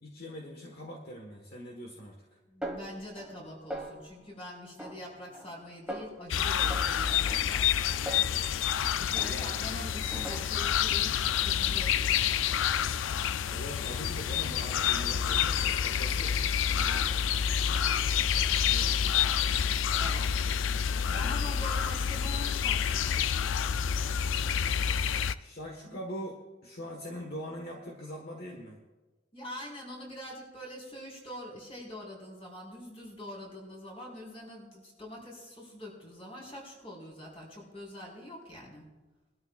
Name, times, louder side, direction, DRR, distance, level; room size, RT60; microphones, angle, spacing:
voice 1, 0.0-2.4 9.2-9.9 13.5-17.2 18.7-19.2 21.2-21.4 25.4-28.8, equal, 55° left, 1 dB, 1.5 m, -43 dB
voice 2, 2.5-14.8 20.0-20.4 21.1-23.4 29.3-38.9, left 1 dB, 30° left, -2 dB, 4.3 m, -45 dB
Snare drum, 2.6-3.4 3.7-4.3 4.8-5.6 5.9-6.3 6.7-8.8 9.2-9.7 10.1-10.8, right 1 dB, 5° right, 1.5 m, -42 dB
sound 1, 6.3-25.4, left 8 dB, 90° left, 0.4 m, -28 dB
21.0 x 12.5 x 2.4 m, 1.2 s
head